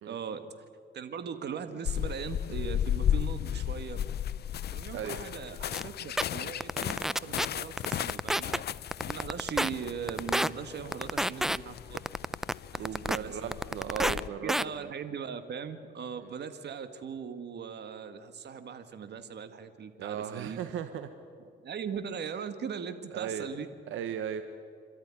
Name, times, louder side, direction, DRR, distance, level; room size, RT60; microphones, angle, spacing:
voice 1, 0.0-0.5 0.9-4.0 4.7-8.6 9.0-12.0 12.7-13.5 13.9-20.6 21.6-23.7, right 7 dB, 55° right, 9 dB, 1.9 m, -39 dB
sound 1, 1.8-14.3, left 10 dB, 55° left, 0.5 m, -35 dB
sound 2, 5.7-5.8 6.2-6.3 6.6-7.5 7.8-8.6 8.9-9.7 10.1-10.5 10.9-11.6 12.0-13.2 13.5-14.2 14.5-14.6, equal, ahead, 0.5 m, -28 dB
voice 2, 12.8-14.9 16.2-16.3 20.0-21.1 23.1-23.5 23.9-24.4, right 9 dB, 80° right, 9 dB, 1.1 m, -37 dB
27.5 x 13.0 x 9.9 m, 2.4 s
cardioid pair, 90°, 20 cm